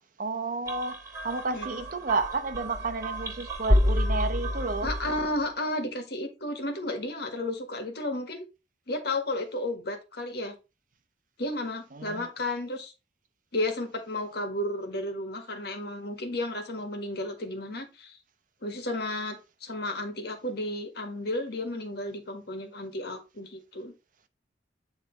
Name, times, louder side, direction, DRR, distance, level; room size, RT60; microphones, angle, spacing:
voice 1, 0.2-4.9 11.9-12.3, right 3 dB, 45° right, 0.8 m, -31 dB
sound 1, 0.7-5.4, equal, 20° right, 2.2 m, -29 dB
voice 2, 4.8-8.4 8.9-10.6 11.4-12.9 13.5-18.2 18.6-23.9, left 1 dB, 60° left, 1.7 m, -33 dB
9.3 x 3.3 x 4.6 m
head